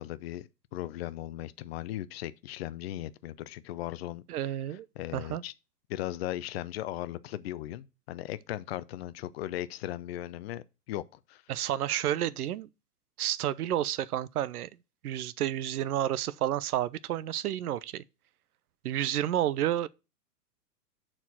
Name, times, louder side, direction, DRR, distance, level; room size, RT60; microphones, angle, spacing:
voice 1, 0.0-4.2 5.0-5.5 5.9-11.0 11.3-11.4, left 14 dB, 40° left, 0.6 m, -37 dB
voice 2, 4.3-4.9 5.1-5.4 11.5-12.7 13.2-14.7 15.0-18.0 18.8-19.9, right 12 dB, 65° right, 0.7 m, -30 dB
6.8 x 4.5 x 6.0 m
hypercardioid pair, 115°, 48 cm